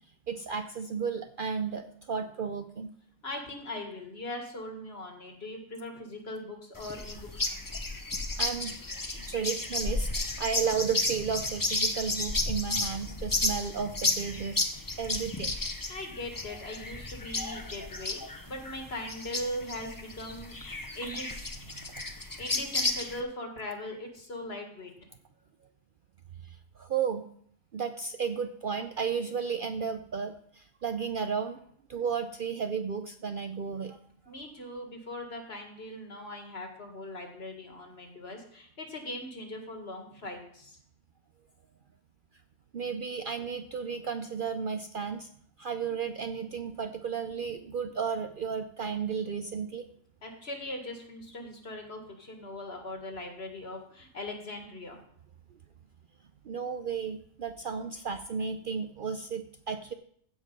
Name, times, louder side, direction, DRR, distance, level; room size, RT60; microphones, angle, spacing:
voice 1, 0.3-2.9 8.4-14.7 15.0-15.6 26.4-27.3 27.7-31.6 31.9-34.0 42.7-45.3 45.6-49.9 56.4-59.9, right 6 dB, 55° right, 8 dB, 0.6 m, -33 dB
voice 2, 3.2-7.6 15.9-18.2 18.5-20.6 20.9-21.5 22.1-24.9 34.3-40.8 50.2-55.0, left 1 dB, 55° left, 3 dB, 2.1 m, -40 dB
sound 1, 6.8-23.2, left 2 dB, 20° left, 0.7 m, -33 dB
15.5 x 5.3 x 5.3 m, 0.64 s
omnidirectional pair, 1.3 m